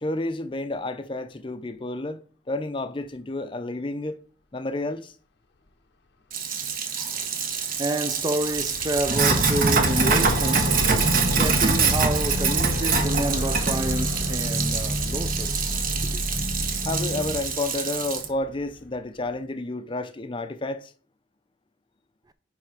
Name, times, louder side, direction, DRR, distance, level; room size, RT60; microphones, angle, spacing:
voice 1, 0.0-2.2 2.5-4.2 4.5-5.1 16.8-20.9, left 2 dB, 25° left, 0.6 m, -30 dB
Sink (filling or washing), 6.3-18.3, right 5 dB, 50° right, 1.1 m, -25 dB
voice 2, 7.0-16.2, right 1 dB, 20° right, 0.5 m, -30 dB
Aircraft, 8.0-18.8 19.3-19.4, left 2 dB, 65° left, 0.8 m, -34 dB
sound 1, 9.1-17.4, equal, 90° right, 2.1 m, -30 dB
9.5 x 3.5 x 5.0 m
head